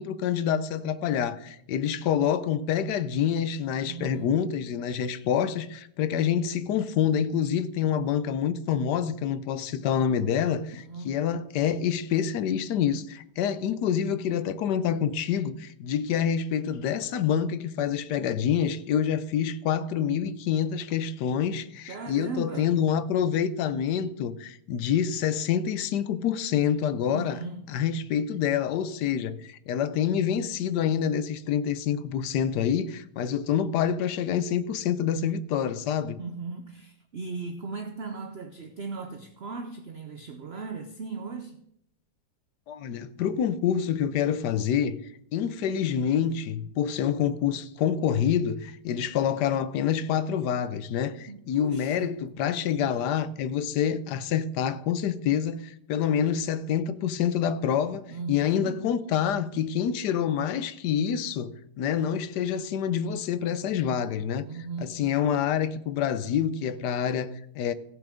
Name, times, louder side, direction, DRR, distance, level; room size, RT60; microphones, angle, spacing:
voice 1, 0.0-27.4 27.7-36.2 42.7-45.0 45.3-64.5 64.8-67.7, left 8 dB, 80° left, 1.3 m, -27 dB
voice 2, 3.8-4.3 10.7-11.3 21.9-22.9 27.0-27.8 36.2-41.6 51.3-52.1 58.1-58.9 64.4-65.1, right 4 dB, 50° right, 0.8 m, -38 dB
15.5 x 7.1 x 5.0 m
omnidirectional pair, 1.8 m